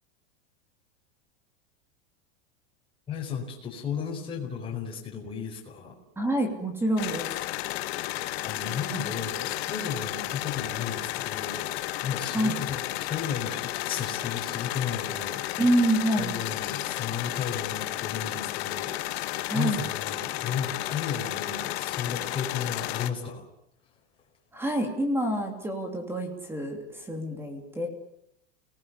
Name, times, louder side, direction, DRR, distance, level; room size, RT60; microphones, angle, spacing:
voice 1, 3.1-6.0 8.0-15.7 16.1-23.5, left 7 dB, 15° left, -1 dB, 4.8 m, -34 dB
voice 2, 6.2-7.3 12.2-12.6 15.6-16.4 19.5-19.8 24.5-27.9, right 1 dB, 5° right, 5 dB, 3.0 m, -27 dB
sound 1, 7.0-23.1, left 16 dB, 60° left, 1.9 m, -33 dB
30.0 x 20.0 x 7.1 m, 0.75 s
supercardioid pair, 170°, 36 cm